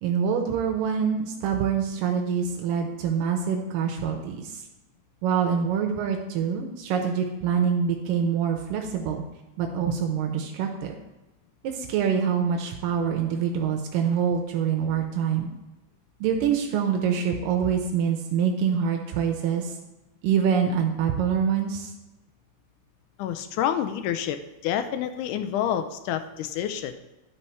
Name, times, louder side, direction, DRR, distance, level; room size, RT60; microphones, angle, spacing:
voice 1, 0.0-4.6 5.2-9.2 9.6-10.9 11.6-15.5 16.2-19.7 20.2-21.9, right 7 dB, 90° right, 2 dB, 2.4 m, -25 dB
voice 2, 23.2-24.4 24.6-27.0, left 10 dB, 80° left, 8 dB, 1.9 m, -28 dB
11.5 x 4.3 x 4.5 m, 1.0 s
omnidirectional pair, 3.9 m